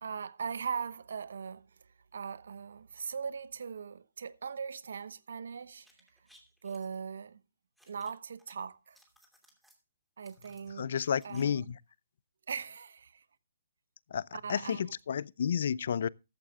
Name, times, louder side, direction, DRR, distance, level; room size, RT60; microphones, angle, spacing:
voice 1, 0.0-1.7 2.1-5.9 6.6-7.4 7.9-9.0 10.2-10.9 11.2-11.7 12.5-13.2 14.3-14.9, right 6 dB, 65° right, 1.0 m, -40 dB
sound 1, 5.7-7.0 7.8-8.5 8.8-9.8 10.2-11.4 11.7-11.8, equal, ahead, 2.6 m, -64 dB
voice 2, 10.8-11.8 14.1-14.2 14.5-16.1, left 8 dB, 60° left, 0.5 m, -31 dB
14.5 x 13.5 x 2.4 m
hypercardioid pair, 140°, 0 cm